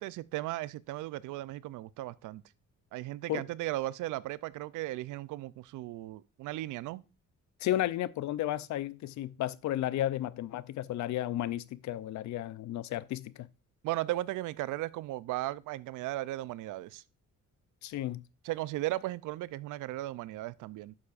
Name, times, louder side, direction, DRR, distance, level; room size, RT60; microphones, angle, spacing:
voice 1, 0.0-2.4 2.9-7.0 13.8-17.0 18.4-20.9, right 16 dB, 80° right, 0.5 m, -36 dB
voice 2, 7.6-13.5 17.8-18.2, left 13 dB, 70° left, 0.5 m, -33 dB
9.6 x 7.1 x 2.5 m
cardioid pair, 90°, 30 cm